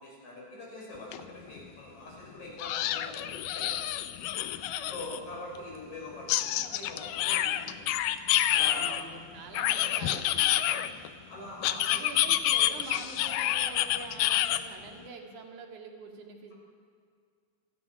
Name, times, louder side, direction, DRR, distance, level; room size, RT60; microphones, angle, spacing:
voice 1, 0.0-3.8 4.9-7.9 8.5-9.0 10.6-12.1, left 1 dB, 60° left, -3 dB, 7.6 m, -44 dB
sound 1, 1.1-1.2 1.6-1.7 2.6-5.2 6.3-9.0 9.5-11.1 11.6-14.6, left 13 dB, 85° left, 2.4 m, -28 dB
voice 2, 4.7-5.1 8.6-10.6 11.9-16.5, right 4 dB, 65° right, 2 dB, 3.6 m, -45 dB
26.5 x 17.5 x 6.1 m, 2.2 s
omnidirectional pair, 3.7 m